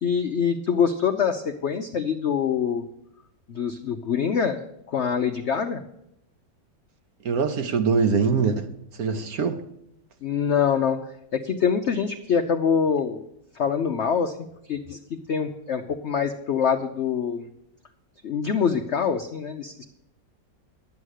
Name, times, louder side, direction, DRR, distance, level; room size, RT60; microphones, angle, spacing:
voice 1, 0.0-2.8 3.5-5.8 10.2-11.0 11.3-13.2 13.5-14.3 14.7-17.4 18.2-19.8, left 7 dB, 80° left, 6 dB, 0.6 m, -25 dB
voice 2, 7.2-8.7 9.0-9.6, right 5 dB, 60° right, 8 dB, 1.1 m, -23 dB
11.0 x 8.2 x 6.4 m, 0.80 s
omnidirectional pair, 2.0 m